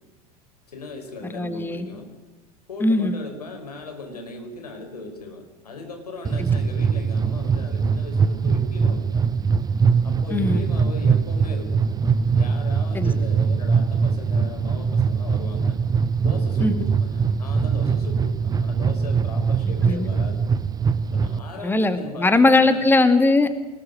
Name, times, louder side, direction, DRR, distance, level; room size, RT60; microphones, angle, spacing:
voice 1, 0.7-2.1 2.7-9.3 10.0-11.8 12.3-15.8 16.2-20.4 21.1-22.9, left 3 dB, 80° left, 5 dB, 5.0 m, -38 dB
voice 2, 1.3-1.9 2.8-3.1 6.4-6.5 10.3-10.6 12.9-13.1 16.6-16.7 19.8-20.1 21.6-23.5, left 2 dB, 10° left, 10 dB, 2.0 m, -19 dB
sound 1, 6.2-21.4, right 5 dB, 20° right, 0.9 m, -22 dB
25.0 x 20.5 x 6.5 m, 1.1 s
figure-of-eight pair, 85°, 20 cm